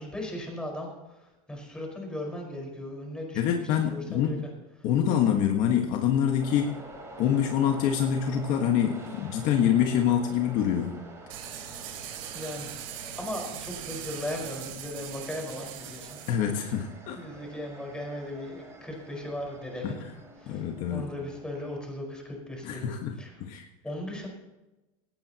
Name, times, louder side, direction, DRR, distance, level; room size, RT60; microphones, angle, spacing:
voice 1, 0.0-4.5 4.8-4.9 11.6-11.8 12.3-16.2 16.7-16.8 17.1-20.0 20.4-23.4 23.8-24.3, left 1 dB, 5° left, -1 dB, 5.1 m, -38 dB
voice 2, 3.3-4.4 4.8-6.8 7.2-11.0 16.3-17.2 19.8-20.0 20.5-21.1 22.6-23.1 23.4-23.6, left 9 dB, 45° left, 2 dB, 1.6 m, -26 dB
sound 1, 6.4-21.8, right 2 dB, 15° right, 4.0 m, -48 dB
sound 2, 11.3-16.3, right 9 dB, 75° right, 3.5 m, -40 dB
19.0 x 18.0 x 3.0 m, 1.0 s
supercardioid pair, 155°, 18 cm